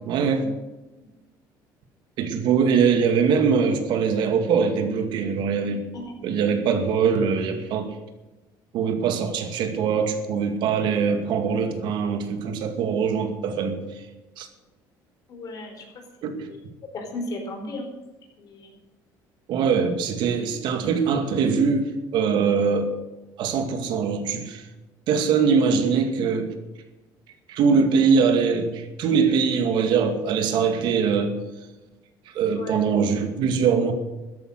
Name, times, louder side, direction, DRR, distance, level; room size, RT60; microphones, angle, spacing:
voice 1, 0.1-0.4 2.2-5.9 6.2-7.9 8.7-14.0 14.4-14.5 16.2-16.5 19.5-22.9 23.4-24.7 25.1-26.5 27.5-31.3 32.3-33.9, right 6 dB, 65° right, 6 dB, 2.3 m, -22 dB
voice 2, 5.9-6.6 15.3-15.9 16.2-16.6 16.9-18.0 18.4-18.7 32.4-32.8, left 2 dB, 45° left, 4 dB, 4.4 m, -36 dB
13.5 x 11.0 x 6.6 m, 1.1 s
cardioid pair, 130°, 9 cm